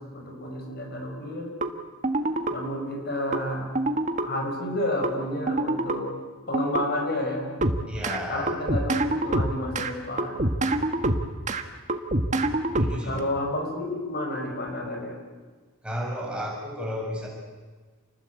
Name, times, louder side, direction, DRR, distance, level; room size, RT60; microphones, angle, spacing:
voice 1, 0.1-1.5 2.5-3.7 4.2-6.1 6.5-7.5 8.3-10.5 13.0-15.2, left 1 dB, 50° left, 2 dB, 5.6 m, -30 dB
sound 1, 1.6-1.7 2.0-2.6 3.3-3.4 3.8-4.3 5.0-5.1 5.5-6.0 6.5-6.8 7.6-8.2 8.5-9.9 10.2-11.6 11.9-13.2, right 2 dB, 35° right, 1.6 m, -25 dB
voice 2, 7.9-8.5 12.8-13.3 15.8-17.3, equal, 5° right, -2 dB, 6.6 m, -32 dB
29.0 x 21.0 x 8.4 m, 1.4 s
head